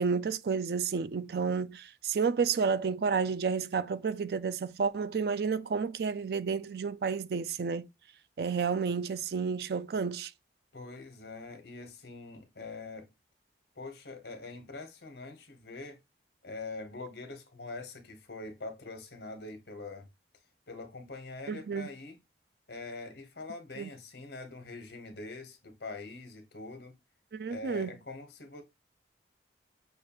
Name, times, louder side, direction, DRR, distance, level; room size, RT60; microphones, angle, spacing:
voice 1, 0.0-7.9 8.4-10.3 21.5-21.9 23.8-23.9 27.3-27.9, right 5 dB, 60° right, 0.4 m, -31 dB
voice 2, 10.7-13.1 13.7-16.0 16.4-20.1 20.7-22.2 22.7-26.9 27.4-28.6, left 3 dB, 80° left, 1.3 m, -44 dB
6.2 x 2.4 x 2.9 m
head